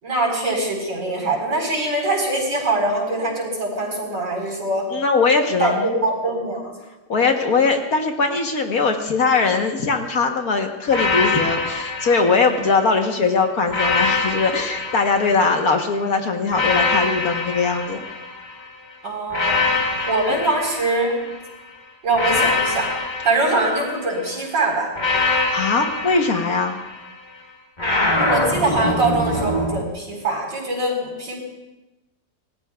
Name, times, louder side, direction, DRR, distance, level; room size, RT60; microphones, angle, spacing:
voice 1, 0.0-4.9 5.6-6.7 19.0-19.7 20.1-21.2 22.0-22.9 23.2-24.9 28.2-31.4, right 2 dB, 75° right, -1 dB, 5.0 m, -23 dB
voice 2, 4.9-5.9 7.1-18.1 20.3-20.4 25.5-26.8, left 4 dB, 55° left, 4 dB, 1.5 m, -20 dB
sound 1, 10.9-13.0 13.7-15.8 16.5-18.7 19.3-21.5 22.1-24.3 25.0-27.1 27.8-29.8, left 3 dB, 25° left, 1.5 m, -24 dB
26.0 x 18.5 x 2.4 m, 1.0 s
omnidirectional pair, 2.0 m